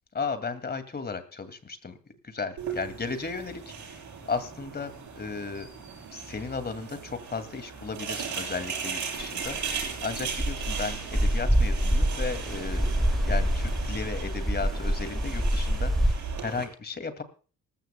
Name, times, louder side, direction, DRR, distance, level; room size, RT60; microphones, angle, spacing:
voice 1, 0.1-2.0 2.2-4.0 4.3-5.7 6.1-13.0 13.3-17.2, left 4 dB, 30° left, 10 dB, 2.3 m, -35 dB
sound 1, 2.6-16.6, right 6 dB, 70° right, 6.6 m, -37 dB
sound 2, 9.2-16.1, equal, ahead, 1.8 m, -26 dB
19.5 x 15.0 x 2.2 m, 0.37 s
cardioid pair, 90°, 30 cm